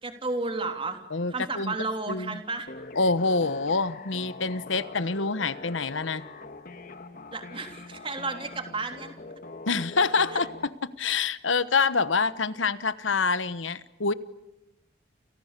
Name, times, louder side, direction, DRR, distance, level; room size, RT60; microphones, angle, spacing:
voice 1, 0.0-1.0 1.3-2.7 7.3-9.1 10.3-10.4, right 3 dB, 30° right, 5 dB, 3.3 m, -32 dB
voice 2, 1.1-1.7 2.1-2.4 2.9-6.2 9.7-10.5 11.0-14.1, left 4 dB, 85° left, 14 dB, 1.2 m, -26 dB
sound 1, 2.7-10.7, left 3 dB, 45° left, 1.7 m, -43 dB
30.0 x 29.5 x 6.8 m, 0.95 s
head